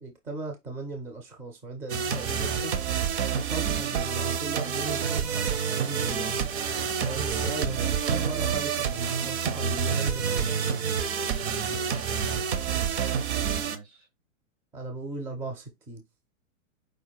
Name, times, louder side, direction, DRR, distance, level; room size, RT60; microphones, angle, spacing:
voice 1, 0.0-3.0 3.3-6.5 7.0-10.9 14.7-16.0, right 2 dB, 5° right, 0.4 m, -38 dB
sound 1, 1.9-13.8, right 7 dB, 55° right, 0.8 m, -28 dB
voice 2, 11.4-14.1, right 3 dB, 80° right, 2.7 m, -47 dB
4.9 x 2.2 x 4.4 m
hypercardioid pair, 125°, 40 cm